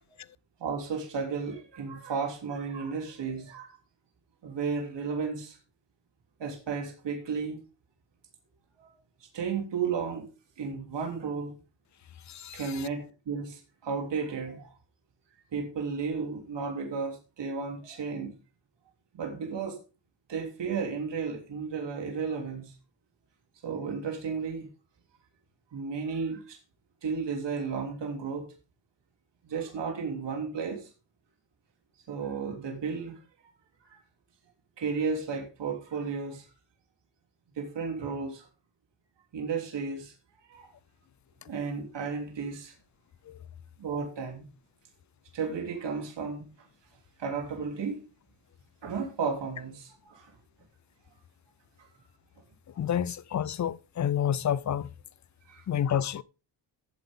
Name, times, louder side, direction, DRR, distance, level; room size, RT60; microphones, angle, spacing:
voice 1, 0.6-3.8 4.4-5.6 6.4-7.6 8.8-8.9 9.2-10.3 10.6-11.5 12.5-14.7 15.5-18.3 19.1-19.8 20.3-22.7 23.6-24.7 25.7-26.6 27.0-28.4 29.4-30.9 32.1-33.2 33.9-34.0 34.8-36.5 37.6-38.5 39.3-40.1 40.5-40.7 41.4-42.7 43.8-44.5 45.3-46.5 47.2-48.0 48.8-50.3 51.8-51.9 55.5-55.6, right 5 dB, 65° right, 3.2 m, -33 dB
voice 2, 12.3-12.9 43.3-43.4 52.8-54.9 55.7-56.2, left 9 dB, 40° left, 0.6 m, -29 dB
14.5 x 7.8 x 3.7 m
cardioid pair, 110°, 47 cm